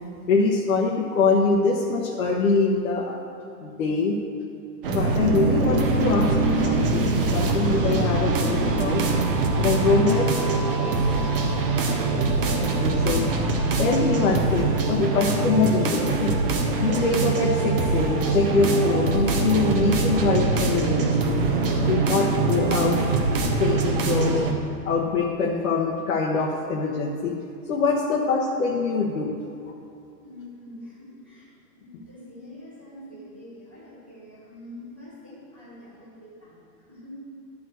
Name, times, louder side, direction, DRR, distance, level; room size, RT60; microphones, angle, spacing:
voice 1, 0.3-3.2 3.6-4.2 4.9-9.0 9.6-10.3 12.6-13.3 13.8-16.3 16.8-21.3 21.9-23.0 23.4-24.4 24.8-27.4 27.7-29.3, left 4 dB, 50° left, -2 dB, 1.0 m, -24 dB
sound 1, 4.8-24.5, right 3 dB, 35° right, 0.8 m, -23 dB
voice 2, 10.9-11.7 30.2-31.5 31.8-37.2, left 1 dB, 10° right, -11 dB, 0.5 m, -45 dB
11.0 x 4.8 x 7.7 m, 2.7 s
hypercardioid pair, 170°, 50 cm